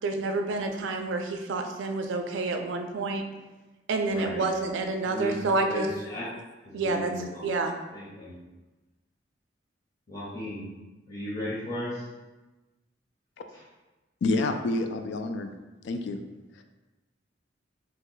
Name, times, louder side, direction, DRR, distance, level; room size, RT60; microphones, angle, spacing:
voice 1, 0.0-3.2 3.9-5.9 6.7-7.1 7.4-7.8, right 3 dB, 75° right, 5 dB, 0.4 m, -28 dB
voice 2, 4.1-4.5 5.1-6.3 6.6-7.5 7.9-8.4 10.1-10.7 11.1-12.0 13.5-13.6, left 1 dB, 40° left, -7 dB, 0.7 m, -36 dB
voice 3, 14.2-15.5 15.8-16.2, left 2 dB, 65° left, 7 dB, 0.3 m, -28 dB
2.9 x 2.2 x 3.8 m, 1.1 s
head